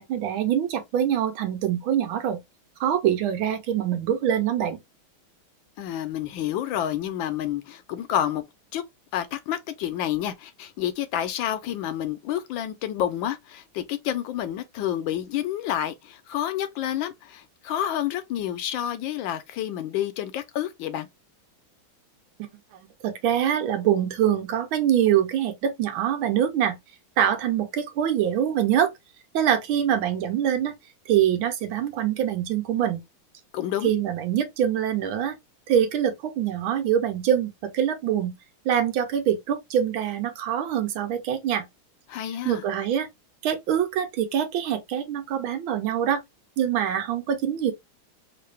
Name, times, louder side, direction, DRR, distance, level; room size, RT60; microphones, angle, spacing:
voice 1, 0.0-2.4 2.8-4.8 22.4-26.8 27.2-28.9 29.3-30.7 31.1-33.0 33.8-35.4 35.7-38.3 38.6-41.6 42.4-43.1 43.4-46.2 46.6-47.7, right 9 dB, 80° right, 1.6 m, -24 dB
voice 2, 5.8-8.4 8.7-8.8 9.1-21.1 33.5-33.9 42.1-42.6, left 11 dB, 75° left, 1.2 m, -29 dB
3.7 x 2.5 x 3.3 m
omnidirectional pair, 2.3 m